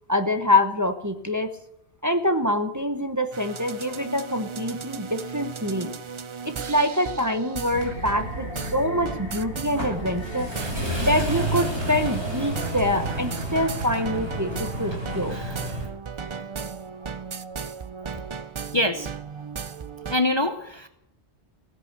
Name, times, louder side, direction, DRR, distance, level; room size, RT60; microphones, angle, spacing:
voice 1, 0.1-1.5 2.0-5.9 6.4-10.5 11.0-15.4, left 1 dB, 15° right, 7 dB, 1.0 m, -25 dB
sound 1, 3.3-20.2, right 6 dB, 35° right, 0.5 m, -36 dB
sound 2, 7.7-15.9, right 1 dB, 70° right, 6.4 m, -31 dB
voice 2, 10.6-11.1 15.3-15.6 18.7-19.1 20.1-20.9, left 1 dB, 25° left, 8 dB, 0.9 m, -26 dB
17.0 x 10.5 x 6.8 m, 0.80 s
omnidirectional pair, 1.1 m